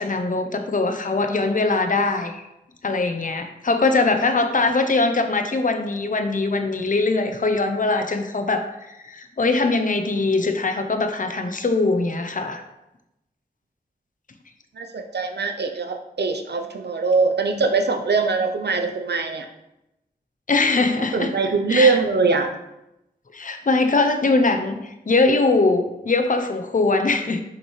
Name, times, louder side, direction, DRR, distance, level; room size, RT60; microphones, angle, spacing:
voice 1, 0.0-2.4 2.8-12.6 20.5-21.3 21.7-21.9 23.3-27.4, left 3 dB, 50° left, 6 dB, 0.7 m, -21 dB
voice 2, 14.7-19.5 21.0-22.5, right 4 dB, 85° right, 6 dB, 0.6 m, -22 dB
6.5 x 5.5 x 3.2 m, 0.90 s
wide cardioid pair, 45°, 17 cm